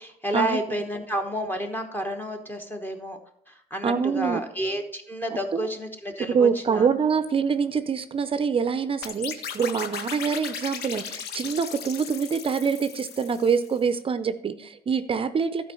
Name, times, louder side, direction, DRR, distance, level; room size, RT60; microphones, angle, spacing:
voice 1, 0.0-3.2 3.5-6.9, equal, 10° left, 4 dB, 1.1 m, -30 dB
voice 2, 3.8-4.4 6.3-15.7, right 6 dB, 35° right, 12 dB, 0.6 m, -25 dB
sound 1, 9.0-13.8, left 7 dB, 75° left, 0.9 m, -37 dB
12.0 x 4.6 x 5.5 m, 0.67 s
cardioid pair, 110°, 17 cm